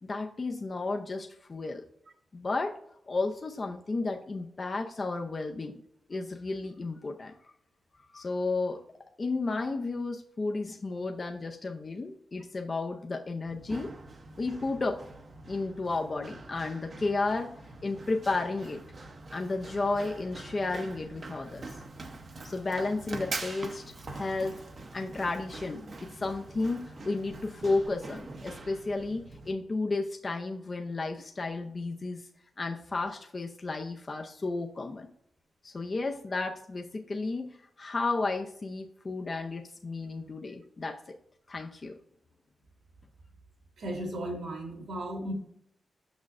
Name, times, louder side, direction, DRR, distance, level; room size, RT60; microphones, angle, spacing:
voice 1, 0.0-1.8 2.3-2.8 3.1-5.8 6.1-7.5 8.1-8.8 9.2-13.9 14.4-15.0 15.5-17.5 17.8-18.8 19.3-21.7 22.4-23.8 24.1-24.6 24.9-32.3 32.6-35.1 35.6-41.2 41.5-41.9, left 3 dB, 35° left, 3 dB, 0.5 m, -33 dB
Run, 13.5-29.5, right 2 dB, 45° right, 0.8 m, -44 dB
voice 2, 43.8-45.3, right 1 dB, 75° right, 2 dB, 2.0 m, -35 dB
6.2 x 6.1 x 2.5 m, 0.70 s
cardioid pair, 90°, 0 cm